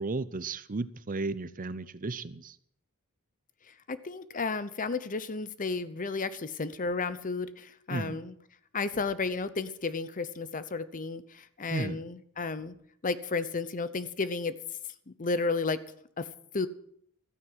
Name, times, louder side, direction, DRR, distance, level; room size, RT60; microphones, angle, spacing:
voice 1, 0.0-2.5 7.9-8.2 11.7-12.0, right 3 dB, 40° right, 15 dB, 0.7 m, -34 dB
voice 2, 3.9-8.4 8.7-12.8 13.0-14.6 15.2-15.8 16.2-16.3 16.5-16.7, left 4 dB, 40° left, 15 dB, 0.8 m, -32 dB
13.5 x 9.5 x 7.9 m, 0.67 s
head